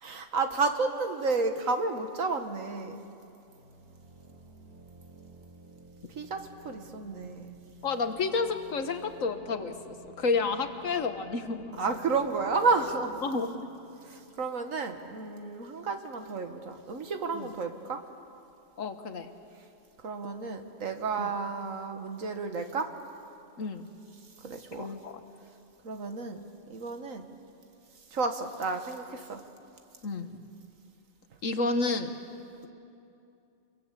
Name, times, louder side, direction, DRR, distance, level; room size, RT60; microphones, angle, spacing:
voice 1, 0.0-3.0 6.2-7.5 11.8-13.2 14.0-18.0 20.0-22.9 24.4-24.9 25.8-27.3 28.1-29.4, right 4 dB, 80° right, 6 dB, 1.9 m, -31 dB
sound 1, 3.5-15.0, right 3 dB, 50° right, 4.4 m, -54 dB
voice 2, 7.8-11.8 13.2-13.5 17.3-17.5 18.8-19.3 21.2-21.3 23.6-23.9 24.8-25.2 30.0-30.3 31.4-32.1, left 4 dB, 80° left, 8 dB, 1.8 m, -30 dB
28.5 x 22.5 x 8.3 m, 2.6 s
omnidirectional pair, 1.4 m